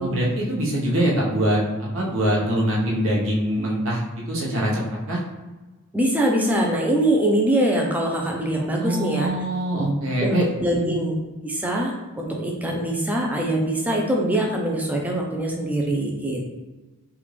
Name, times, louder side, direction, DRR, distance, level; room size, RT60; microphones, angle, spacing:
voice 1, 0.0-1.6 1.9-4.0 4.3-4.8 5.1-5.2 8.8-10.4 10.7-11.0, right 1 dB, 65° right, -4 dB, 0.9 m, -23 dB
voice 2, 5.9-9.3 10.2-16.5, right 1 dB, 5° right, -1 dB, 0.4 m, -23 dB
3.4 x 2.4 x 3.2 m, 1.2 s
head